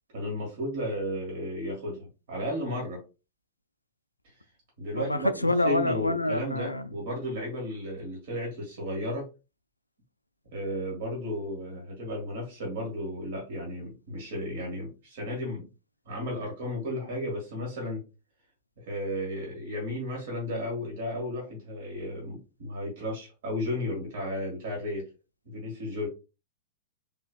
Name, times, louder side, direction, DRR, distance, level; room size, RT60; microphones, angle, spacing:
voice 1, 0.1-3.0 4.8-5.3 5.6-9.3 10.5-15.7 16.1-18.0 18.8-25.1 25.5-26.1, left 1 dB, 55° right, 1.7 m, -34 dB
voice 2, 4.9-6.9, left 2 dB, 85° left, 0.3 m, -26 dB
3.8 x 3.1 x 2.3 m
figure-of-eight pair, 100°, 0 cm